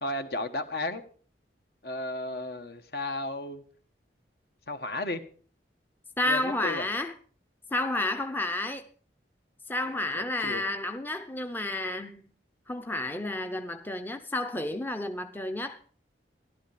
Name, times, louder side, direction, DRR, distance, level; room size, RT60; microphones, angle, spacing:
voice 1, 0.0-1.0 1.8-3.6 4.7-5.2 6.2-6.9 10.1-10.6, left 2 dB, 60° left, 1.4 m, -34 dB
voice 2, 6.2-7.1 7.7-8.8 9.7-12.2 12.7-15.8, left 2 dB, 10° left, 0.7 m, -31 dB
15.0 x 12.0 x 5.0 m
head